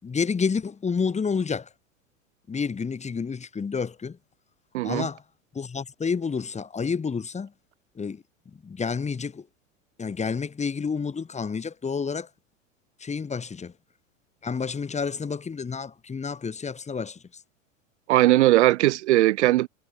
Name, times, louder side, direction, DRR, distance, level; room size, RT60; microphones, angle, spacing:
voice 1, 0.0-1.7 2.5-4.2 4.8-5.2 5.5-7.5 8.0-8.2 8.6-9.5 10.0-12.3 13.0-13.7 14.4-17.2, left 5 dB, 15° left, 6.1 m, -29 dB
voice 2, 4.7-5.1 18.1-19.7, right 16 dB, 60° right, 1.0 m, -19 dB
figure-of-eight pair, 90°, 38 cm